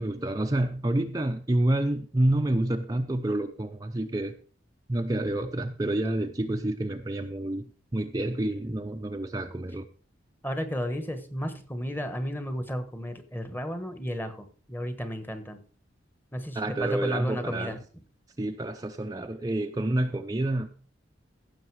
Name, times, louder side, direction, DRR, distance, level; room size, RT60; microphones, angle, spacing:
voice 1, 0.0-4.3 4.9-9.9 16.5-17.8 18.4-20.7, right 1 dB, 20° right, 0.6 m, -28 dB
voice 2, 10.4-15.6 16.3-17.8, equal, 10° left, 1.2 m, -33 dB
15.5 x 6.5 x 4.8 m
head